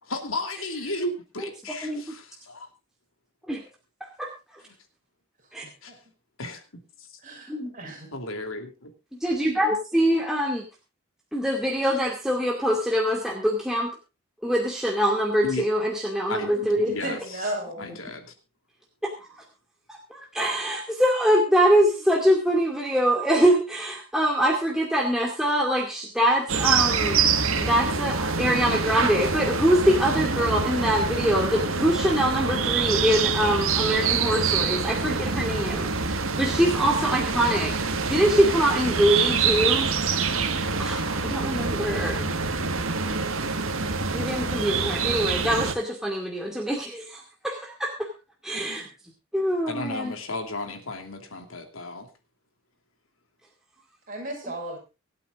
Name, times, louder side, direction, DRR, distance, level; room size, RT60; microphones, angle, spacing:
voice 1, 0.0-2.7 4.7-4.8 5.8-6.0 6.4-6.6 7.0-7.1 8.1-8.9 15.4-15.7 16.3-17.4 17.8-18.3 49.7-52.1, left 2 dB, 85° left, 6 dB, 3.0 m, -34 dB
voice 2, 7.2-8.1 17.0-17.9 48.5-48.9 54.1-54.8, right 1 dB, 40° right, 1 dB, 5.9 m, -34 dB
voice 3, 9.1-10.6 11.3-13.9 14.4-16.9 20.1-27.2 27.6-37.7 38.1-39.9 40.8-42.3 44.1-48.1 48.4-48.9 49.3-50.1, equal, ahead, -1 dB, 2.2 m, -24 dB
sound 1, 26.5-45.7, right 5 dB, 90° right, 1.7 m, -26 dB
25.0 x 8.7 x 2.5 m, 0.29 s
head